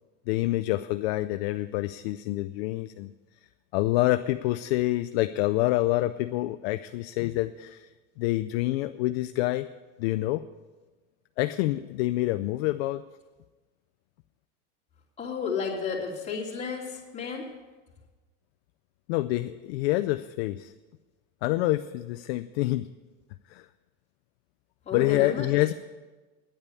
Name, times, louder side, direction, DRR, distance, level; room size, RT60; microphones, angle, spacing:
voice 1, 0.3-3.1 3.7-7.9 8.2-9.7 10.0-10.4 11.4-13.0 19.1-20.7 21.4-22.9 23.5-23.6 24.9-25.7, left 17 dB, 55° left, 10 dB, 0.5 m, -27 dB
voice 2, 15.2-17.5 24.9-25.5, left 5 dB, 15° left, -4 dB, 2.8 m, -32 dB
9.8 x 8.8 x 8.4 m, 1.2 s
supercardioid pair, 145°, 39 cm